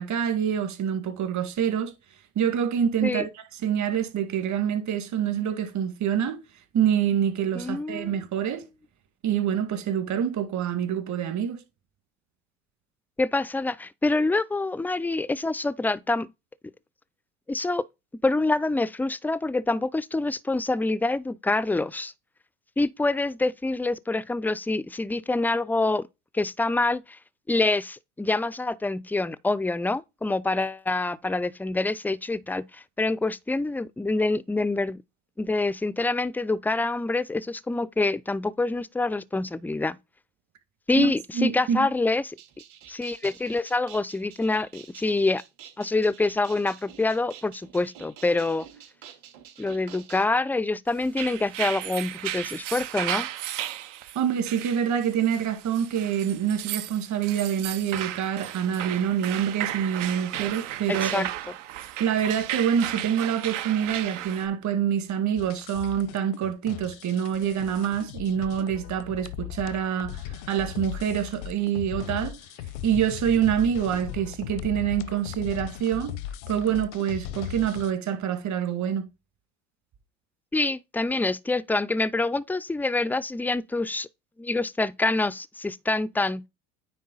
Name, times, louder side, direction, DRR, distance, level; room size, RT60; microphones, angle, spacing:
voice 1, 0.0-1.9 2.4-6.4 6.7-8.6 9.2-11.6 40.9-41.1 41.3-41.8 54.2-61.3 62.0-72.4 72.8-76.1 76.5-79.1, right 8 dB, 50° right, 2.2 m, -26 dB
voice 2, 7.5-8.2 13.2-16.3 17.5-17.8 18.2-22.1 22.8-26.0 26.3-27.2 27.5-35.0 35.4-40.0 40.9-42.4 42.9-45.4 45.8-48.7 49.6-53.3 60.9-61.3 80.5-84.1 84.4-86.4, left 2 dB, 5° left, 0.3 m, -26 dB
sound 1, 42.3-50.3, right 9 dB, 65° right, 3.4 m, -49 dB
sound 2, 51.0-64.5, right 13 dB, 85° right, 0.9 m, -34 dB
sound 3, 65.4-77.9, left 12 dB, 75° left, 0.7 m, -38 dB
9.4 x 3.7 x 3.9 m
hypercardioid pair, 80°, 36 cm